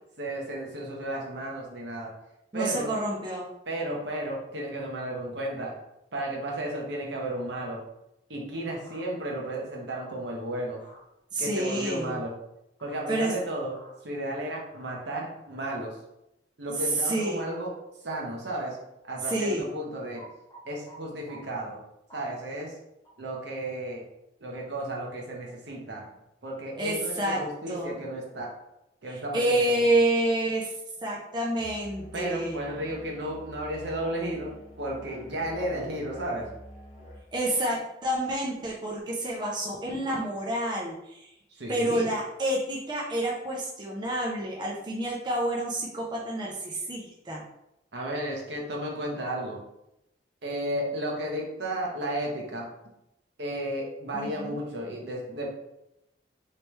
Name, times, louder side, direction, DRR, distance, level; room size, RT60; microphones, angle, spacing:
voice 1, 0.2-2.1 2.5-2.9 3.7-5.7 6.1-7.8 8.3-10.8 11.4-12.3 12.8-13.7 14.0-16.0 16.6-17.7 18.0-18.8 19.0-20.3 20.6-21.8 22.1-22.7 23.2-24.0 24.4-26.1 26.4-28.5 29.0-29.9 32.1-36.5 41.5-42.1 47.9-49.6 50.4-52.7 53.4-55.5, right 1 dB, 70° right, -1 dB, 0.9 m, -33 dB
voice 2, 2.5-3.5 11.3-12.1 13.1-13.3 16.9-17.5 19.3-19.6 26.8-27.4 27.7-27.9 29.1-30.7 31.0-32.6 37.3-41.3 41.7-47.4 54.1-54.6, right 1 dB, 25° right, -3 dB, 0.5 m, -28 dB
sound 1, 8.8-9.0 9.9-10.1 10.8-11.0 11.7-11.9 12.8-13.0 13.7-13.9 14.7-14.9 20.2-21.0 21.3-21.4 22.1-22.2 23.0-23.1, right 2 dB, 20° left, 0.9 m, -50 dB
Musical instrument, 31.6-37.3, left 1 dB, 35° left, 0.6 m, -47 dB
3.2 x 3.2 x 3.1 m, 0.86 s
head